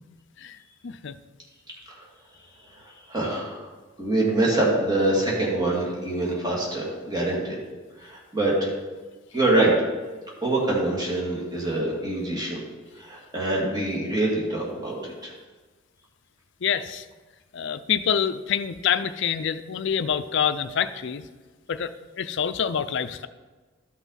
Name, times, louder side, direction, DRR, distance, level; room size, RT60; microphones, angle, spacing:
voice 1, 0.8-1.1 16.6-17.0 17.5-21.2 21.7-23.3, left 8 dB, 60° left, 12 dB, 0.5 m, -26 dB
voice 2, 3.1-3.6 4.0-7.6 8.0-8.7 9.3-9.7 10.4-12.6 13.0-15.3, right 2 dB, 20° right, -4 dB, 2.3 m, -25 dB
12.5 x 6.0 x 4.1 m, 1.3 s
head